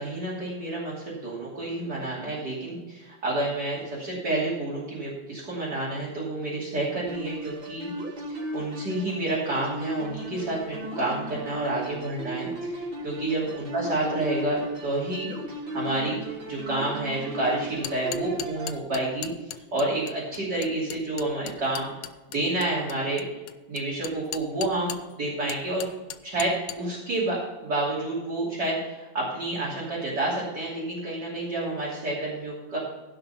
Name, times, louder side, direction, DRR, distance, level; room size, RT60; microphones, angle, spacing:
voice 1, 0.0-7.9 8.3-15.3 15.7-16.2 16.5-21.9 22.3-23.4 23.7-25.9 26.2-32.8, right 2 dB, 55° right, -7 dB, 3.6 m, -29 dB
sound 1, 7.1-18.8, equal, 90° right, 3.8 m, -36 dB
sound 2, 17.7-25.1 25.5-26.8, left 11 dB, 75° left, 1.3 m, -38 dB
16.0 x 5.8 x 5.7 m, 1.2 s
omnidirectional pair, 2.1 m